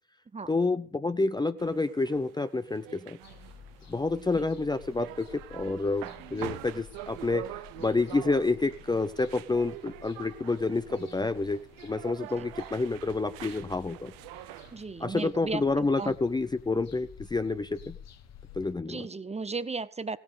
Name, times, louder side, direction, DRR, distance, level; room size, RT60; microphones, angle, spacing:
voice 1, 0.5-3.2 3.9-14.1 15.0-18.0 18.5-19.1, left 3 dB, 10° left, 12 dB, 0.6 m, -29 dB
sound 1, 1.6-14.8, right 17 dB, 65° right, 0.7 m, -45 dB
sound 2, 3.2-18.8, left 9 dB, 45° left, 1.3 m, -52 dB
voice 2, 14.7-15.6 16.0-16.1 18.9-20.2, right 4 dB, 20° right, 16 dB, 0.8 m, -35 dB
16.5 x 9.1 x 5.1 m, 0.42 s
hypercardioid pair, 60°, 35 cm